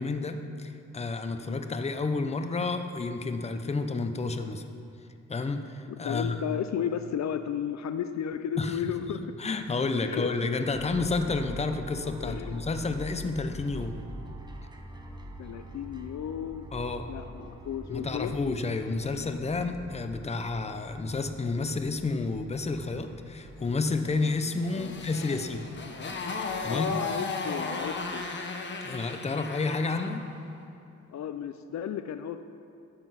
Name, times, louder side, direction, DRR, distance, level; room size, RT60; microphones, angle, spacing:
voice 1, 0.0-4.6 5.3-6.4 8.6-8.9 9.4-14.0 16.7-17.1 17.9-25.7 26.6-26.9 28.8-30.2, left 3 dB, 20° left, 7 dB, 0.7 m, -30 dB
voice 2, 5.9-9.2 10.0-10.3 12.2-12.7 15.4-16.7 17.1-18.3 24.7-25.0 26.7-28.2 31.1-32.4, left 9 dB, 65° left, 9 dB, 0.5 m, -34 dB
sound 1, 10.7-28.3, right 1 dB, 15° right, 1.0 m, -45 dB
Motorcycle, 24.1-30.2, left 3 dB, 35° left, 1.2 m, -35 dB
12.5 x 7.8 x 5.7 m, 2.7 s
cardioid pair, 110°, 30 cm